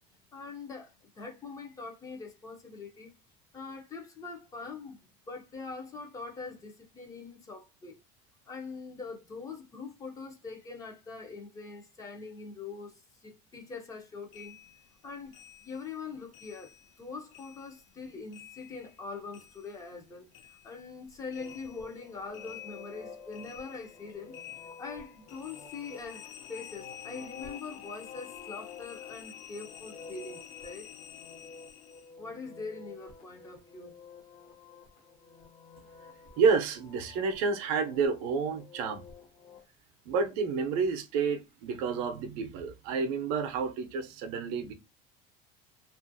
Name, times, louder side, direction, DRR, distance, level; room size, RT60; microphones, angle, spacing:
voice 1, 0.3-3.1 3.5-7.9 8.5-12.9 13.2-14.5 15.0-15.4 15.6-24.4 24.8-30.9 32.2-33.9, left 4 dB, 20° left, 0.4 m, -43 dB
sound 1, 14.3-17.0 17.3-20.1 20.3-32.1, left 10 dB, 90° left, 0.6 m, -50 dB
sound 2, 21.3-39.6, left 4 dB, 45° left, 0.8 m, -51 dB
voice 2, 36.4-39.0 40.1-44.7, right 5 dB, 75° right, 0.6 m, -29 dB
2.8 x 2.4 x 2.6 m
cardioid pair, 180°, 19 cm